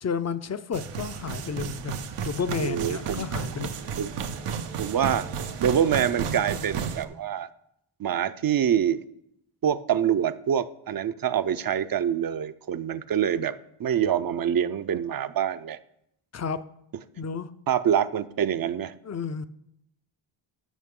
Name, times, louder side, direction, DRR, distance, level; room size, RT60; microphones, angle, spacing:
voice 1, 0.0-3.7 16.3-16.6 17.2-17.5 19.0-19.5, left 6 dB, 35° left, 13 dB, 0.5 m, -32 dB
sound 1, 0.7-7.1, right 6 dB, 85° right, 0.8 m, -33 dB
voice 2, 2.6-3.3 4.0-4.1 4.8-5.3 5.6-7.5 8.0-9.0 9.6-13.5 13.8-15.8 17.7-18.9, right 9 dB, 45° right, 13 dB, 0.5 m, -25 dB
13.5 x 5.7 x 3.7 m, 0.77 s
cardioid pair, 70°, 50 cm